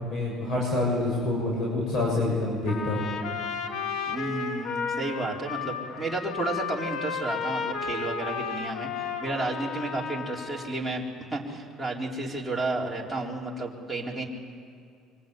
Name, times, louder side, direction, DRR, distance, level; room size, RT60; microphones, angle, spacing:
voice 1, 0.1-3.0, left 2 dB, 55° left, -2 dB, 7.1 m, -27 dB
Trumpet, 2.7-10.7, left 6 dB, 70° left, 1.9 m, -33 dB
voice 2, 4.1-8.9 9.2-11.0 11.3-14.2, right 2 dB, ahead, -4 dB, 4.2 m, -32 dB
25.5 x 23.5 x 9.5 m, 2.3 s
cardioid pair, 135°, 0 cm